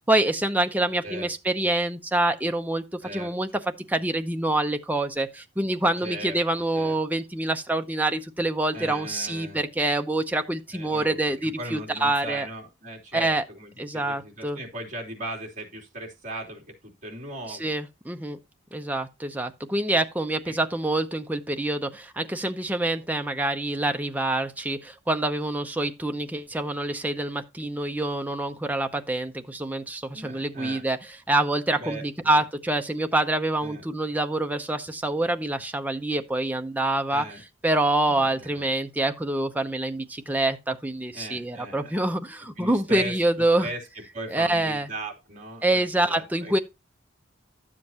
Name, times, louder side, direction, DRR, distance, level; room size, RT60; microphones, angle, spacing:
voice 1, 0.0-3.5 3.9-12.5 13.1-13.4 13.8-14.6 17.5-18.4 18.7-37.3 37.6-43.7 44.3-44.9 45.6-46.6, right 1 dB, 10° right, 0.7 m, -26 dB
voice 2, 6.0-6.4 6.7-6.9 8.7-9.7 10.7-11.2 11.4-17.7 20.5-20.6 30.1-30.8 31.7-32.4 33.6-33.8 37.1-37.4 38.0-38.6 41.1-42.1 42.6-43.1 43.6-43.8 44.1-46.6, right 1 dB, 40° right, 3.2 m, -38 dB
12.0 x 7.6 x 2.9 m
head